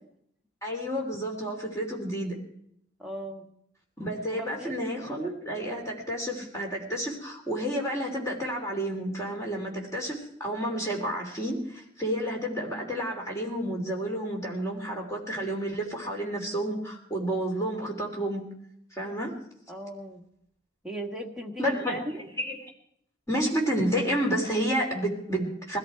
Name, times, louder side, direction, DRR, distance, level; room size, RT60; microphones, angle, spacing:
voice 1, 0.6-2.4 4.0-18.5 18.9-19.3 21.6-22.0 22.4-22.6 23.3-25.8, equal, 15° left, -1 dB, 3.3 m, -30 dB
voice 2, 3.0-3.5 4.2-4.9 19.7-20.3 20.8-22.3, right 1 dB, ahead, -1 dB, 1.5 m, -38 dB
20.0 x 13.5 x 4.6 m, 0.72 s
head